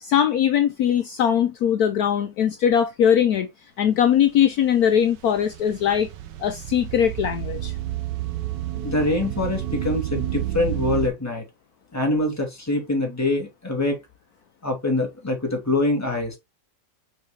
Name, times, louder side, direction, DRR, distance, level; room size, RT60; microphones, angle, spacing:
voice 1, 0.0-3.5 3.8-6.1 6.4-7.7, left 9 dB, 70° left, 1.1 m, -20 dB
sound 1, 4.3-11.1, right 13 dB, 80° right, 1.4 m, -30 dB
voice 2, 8.8-11.4 11.9-14.0 14.6-16.4, left 2 dB, 10° left, 2.0 m, -24 dB
6.4 x 4.5 x 3.3 m
omnidirectional pair, 1.9 m